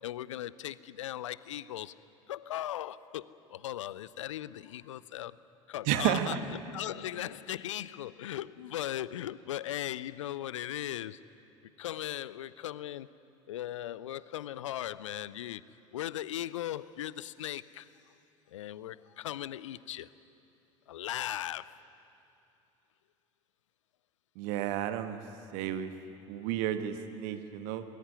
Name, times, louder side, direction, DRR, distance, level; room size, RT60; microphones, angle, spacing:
voice 1, 0.0-1.9 2.3-5.4 5.7-11.2 11.8-13.1 13.5-15.6 15.9-17.9 18.5-20.1 20.9-21.8, left 12 dB, 70° left, 19 dB, 0.6 m, -38 dB
voice 2, 5.9-6.4 24.4-25.2 25.5-25.9 26.3-27.8, right 11 dB, 55° right, 9 dB, 1.4 m, -31 dB
20.0 x 20.0 x 9.5 m, 2.7 s
figure-of-eight pair, 65°, 16 cm